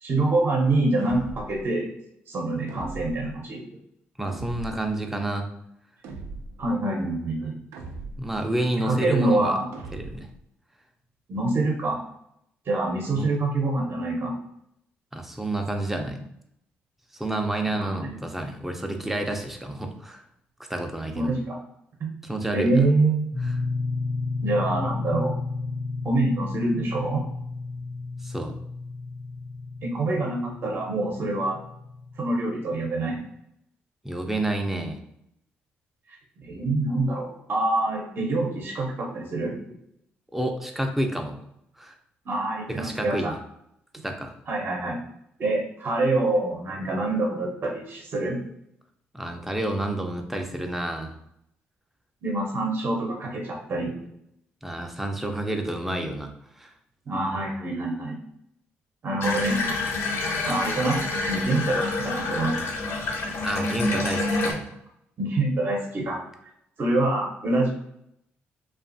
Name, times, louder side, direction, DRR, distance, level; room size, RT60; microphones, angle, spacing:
voice 1, 0.0-1.9 2.3-3.6 6.6-7.5 8.8-9.7 11.3-12.0 12.7-14.3 17.7-18.2 21.1-21.6 22.0-22.1 22.5-23.3 24.4-25.3 26.0-27.2 29.8-31.6 32.2-33.2 36.4-39.5 42.3-43.3 44.5-45.0 45.4-48.4 52.2-53.9 57.1-58.2 59.0-59.6 60.4-61.0 61.3-62.5 65.2-66.2 66.8-67.7, right 2 dB, 50° right, -1 dB, 0.7 m, -25 dB
sound 1, 1.0-1.6 2.7-3.4 4.3-4.9 6.0-6.7 7.7-8.4 9.7-10.4, right 3 dB, 80° right, 0.4 m, -39 dB
voice 2, 4.2-5.5 8.2-9.6 9.9-10.3 13.1-13.3 15.1-16.2 17.1-20.2 20.7-21.3 22.2-22.7 28.2-28.5 34.0-35.0 40.3-41.4 41.8-42.0 42.7-43.4 44.0-44.3 49.1-51.1 54.6-56.3 56.6-56.7 63.4-64.7, right 1 dB, 5° right, 4 dB, 0.4 m, -29 dB
sound 2, 23.3-32.9, left 3 dB, 80° left, 1.1 m, -33 dB
Water tap faucet / Bathtub (filling or washing), 59.2-64.5, left 2 dB, 65° left, 0.5 m, -28 dB
2.5 x 2.3 x 2.5 m, 0.76 s
supercardioid pair, 70°, 5 cm